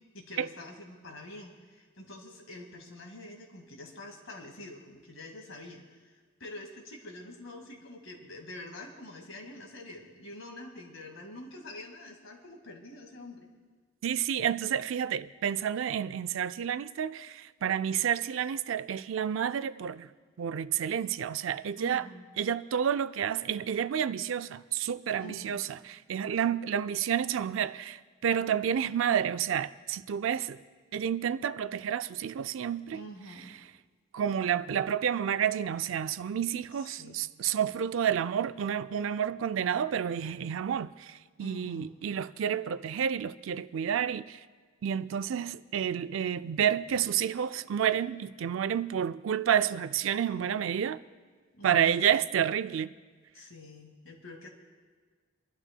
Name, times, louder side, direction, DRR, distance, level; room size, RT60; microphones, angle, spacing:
voice 1, 0.1-6.1 6.4-13.5 21.8-22.3 25.2-25.7 32.9-33.6 36.7-37.3 41.4-42.0 51.5-52.1 53.3-54.5, left 1 dB, 80° left, 1.9 m, -46 dB
voice 2, 14.0-20.1 20.4-22.1 22.4-30.6 30.9-33.0 34.1-41.1 41.4-44.4 44.8-51.0 51.6-52.9, right 8 dB, 75° right, 0.4 m, -30 dB
30.0 x 11.5 x 2.2 m
head